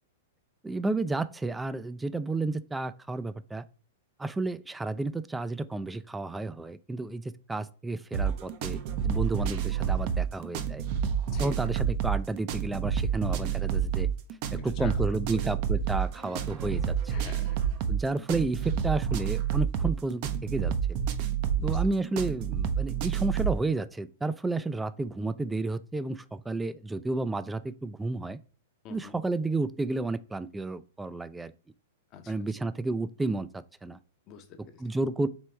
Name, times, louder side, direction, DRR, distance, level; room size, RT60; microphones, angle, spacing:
voice 1, 0.6-3.6 4.2-10.8 11.4-14.1 14.5-17.1 17.9-21.0 21.6-28.4 28.9-31.5 32.3-34.0 34.8-35.3, right 2 dB, 10° right, 0.3 m, -31 dB
sound 1, 8.1-23.6, right 8 dB, 50° right, 0.6 m, -29 dB
voice 2, 11.3-11.7 14.6-15.5 17.1-17.9 21.5-21.9 28.8-29.1 32.1-32.4 34.3-34.8, left 8 dB, 40° left, 0.7 m, -47 dB
4.5 x 3.3 x 3.2 m
hypercardioid pair, 110°, 0 cm